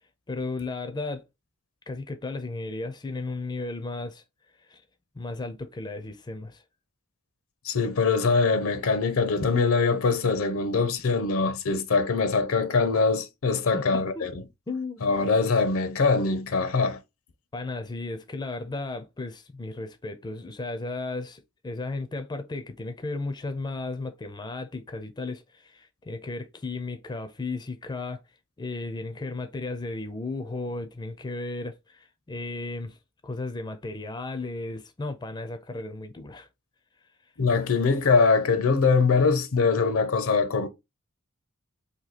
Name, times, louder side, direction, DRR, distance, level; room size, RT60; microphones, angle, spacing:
voice 1, 0.3-1.2 1.9-4.2 4.6-4.8 5.1-6.6 13.7-14.3 14.7-15.0 17.5-28.2 28.6-33.0 33.2-36.5, left 3 dB, 20° left, 0.4 m, -34 dB
voice 2, 7.7-14.3 15.0-17.0 37.4-40.7, left 4 dB, 75° left, 0.6 m, -23 dB
2.8 x 2.6 x 3.9 m
head